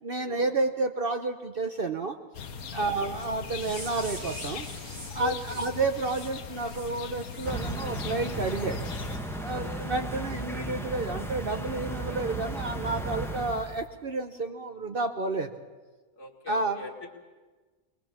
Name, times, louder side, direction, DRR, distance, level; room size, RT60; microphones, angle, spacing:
voice 1, 0.0-2.2 2.7-4.7 5.1-8.9 9.4-15.5 16.5-16.9, right 3 dB, 45° right, 6 dB, 0.9 m, -30 dB
sound 1, 2.3-9.2, left 6 dB, 85° left, 1.6 m, -40 dB
voice 2, 2.7-3.1 5.2-5.6 9.5-10.0 16.2-17.1, left 6 dB, 55° left, 0 dB, 2.5 m, -40 dB
sound 2, 3.4-8.1 8.5-8.7 9.1-9.3 9.7-9.9 10.4-10.5, right 1 dB, 90° right, 4.1 m, -46 dB
sound 3, 7.4-13.8, right 1 dB, ahead, 1.3 m, -35 dB
22.5 x 20.0 x 7.3 m, 1.3 s
omnidirectional pair, 1.5 m